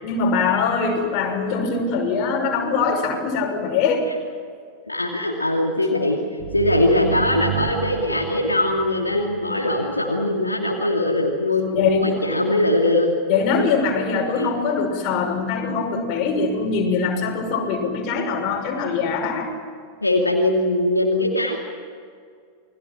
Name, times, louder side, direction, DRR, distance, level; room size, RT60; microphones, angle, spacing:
voice 1, 0.0-4.1 11.7-12.1 13.3-19.5, left 5 dB, 40° left, 1 dB, 5.9 m, -22 dB
voice 2, 4.9-6.2 6.5-13.1 13.6-13.7 14.4-14.5 20.0-21.6, left 1 dB, 80° left, 0 dB, 2.6 m, -21 dB
sound 1, 6.4-10.0, right 8 dB, 55° right, 1.4 m, -31 dB
29.0 x 21.5 x 6.1 m, 2.1 s
figure-of-eight pair, 90°, 0 cm